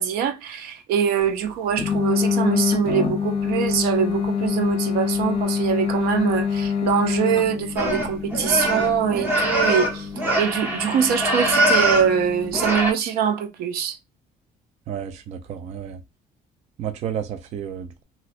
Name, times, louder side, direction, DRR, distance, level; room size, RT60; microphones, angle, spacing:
voice 1, 0.0-10.1 10.4-14.0, right 8 dB, 90° right, 0.6 m, -23 dB
sound 1, 1.8-12.6, left 6 dB, 40° left, 0.6 m, -26 dB
sound 2, 7.8-12.1 12.5-12.9, right 1 dB, 10° right, 0.8 m, -22 dB
voice 2, 14.9-16.0 16.8-18.0, right 9 dB, 50° right, 0.4 m, -31 dB
2.7 x 2.1 x 4.0 m
cardioid pair, 170°, 15 cm